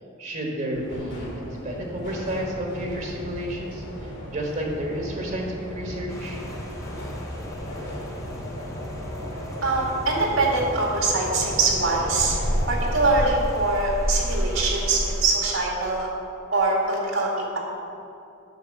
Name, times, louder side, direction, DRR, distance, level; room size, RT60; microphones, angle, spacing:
voice 1, 0.2-6.4, right 1 dB, 40° right, 0 dB, 1.3 m, -31 dB
sound 1, 0.7-13.2, equal, 60° left, 2.4 m, -35 dB
Rain, 6.1-15.2, equal, 15° left, 1.1 m, -32 dB
voice 2, 9.6-12.4 12.7-16.1 16.5-17.6, right 3 dB, 80° right, -2 dB, 2.2 m, -23 dB
8.2 x 6.0 x 7.3 m, 2.7 s
head